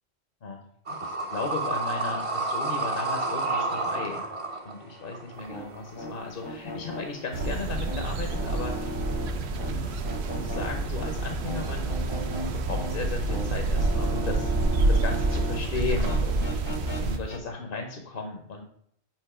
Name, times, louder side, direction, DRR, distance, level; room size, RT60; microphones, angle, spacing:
voice 1, 0.9-4.3 4.6-8.9 9.6-9.9 10.3-12.1 12.7-14.5 14.9-16.6 17.0-18.6, left 4 dB, 60° left, 3 dB, 0.9 m, -35 dB
sound 1, 0.9-7.2, right 3 dB, 35° right, 0.7 m, -31 dB
sound 2, 5.3-15.6 15.9-17.4, left 1 dB, 30° left, 0.7 m, -38 dB
sound 3, 7.3-17.2, right 3 dB, 75° right, 0.9 m, -28 dB
7.5 x 2.7 x 4.8 m, 0.69 s
omnidirectional pair, 1.1 m